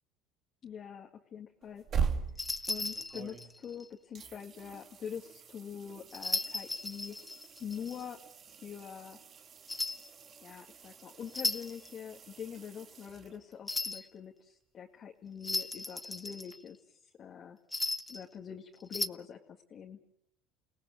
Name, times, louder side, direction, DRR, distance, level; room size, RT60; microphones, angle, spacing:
voice 1, 0.6-2.2 2.7-7.2 7.6-8.2 8.5-9.2 10.4-17.6 18.1-20.0, left 7 dB, 45° left, 1 dB, 2.1 m, -45 dB
sound 1, 1.6-3.8 4.1-13.7 16.5-16.6, right 6 dB, 40° right, 2.5 m, -42 dB
sound 2, 2.4-3.9 6.1-8.1 9.7-10.1 11.3-11.9 13.7-14.1 15.4-16.7 17.7-18.2 18.8-19.1, left 2 dB, 15° left, 0.9 m, -36 dB
29.5 x 18.0 x 7.9 m, 0.75 s
supercardioid pair, 95°, 0 cm